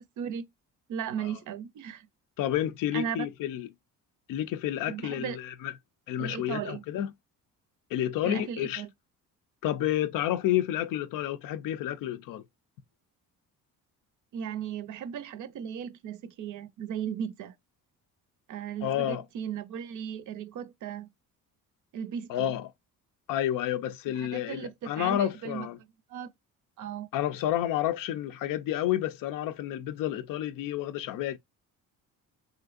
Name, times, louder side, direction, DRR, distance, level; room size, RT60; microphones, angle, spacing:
voice 1, 0.9-2.1 2.9-3.3 4.8-5.4 6.2-6.8 8.2-8.9 14.3-17.5 18.5-21.1 21.9-22.5 24.1-26.3 26.8-27.1, right 8 dB, 60° right, 0.5 m, -36 dB
voice 2, 2.4-3.7 4.3-5.7 6.1-7.1 7.9-8.8 9.6-12.4 18.8-19.2 22.3-22.7 23.3-25.8 27.1-31.4, left 12 dB, 70° left, 0.5 m, -30 dB
3.1 x 2.6 x 2.3 m
cardioid pair, 120°, 34 cm